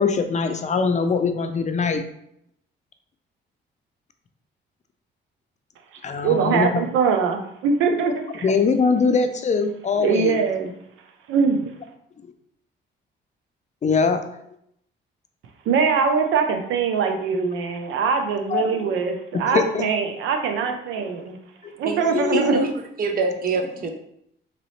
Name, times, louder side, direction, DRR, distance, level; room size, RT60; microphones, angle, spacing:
voice 1, 0.0-2.0 6.0-6.9 8.4-10.4 13.8-14.2 18.5-19.0 19.3-19.9 21.0-21.2 21.6-21.7 22.0-22.5, left 5 dB, 35° left, 7 dB, 0.5 m, -22 dB
voice 2, 6.2-8.5 10.0-10.7 11.3-11.7 15.7-21.4 21.8-22.6, right 5 dB, 90° right, 4 dB, 0.6 m, -22 dB
voice 3, 22.3-22.7 23.0-23.9, right 3 dB, 45° right, 3 dB, 0.7 m, -24 dB
3.9 x 2.9 x 3.2 m, 0.74 s
cardioid pair, 90°, 20 cm